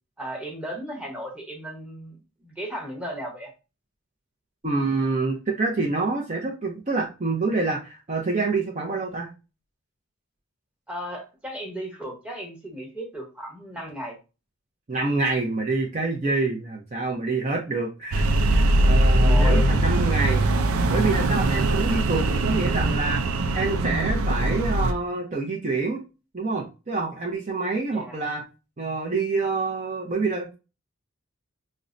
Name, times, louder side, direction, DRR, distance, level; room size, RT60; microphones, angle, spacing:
voice 1, 0.2-2.2 2.4-3.5 10.9-14.1 19.2-19.7 27.9-28.1, equal, 5° right, 0 dB, 1.0 m, -35 dB
voice 2, 4.6-9.3 14.9-20.4 20.9-23.2 23.5-26.0 26.3-28.4 28.8-30.5, right 3 dB, 35° right, 0 dB, 0.6 m, -27 dB
sound 1, 18.1-24.9, right 1 dB, 90° right, 0.5 m, -21 dB
5.3 x 2.1 x 2.5 m, 0.29 s
head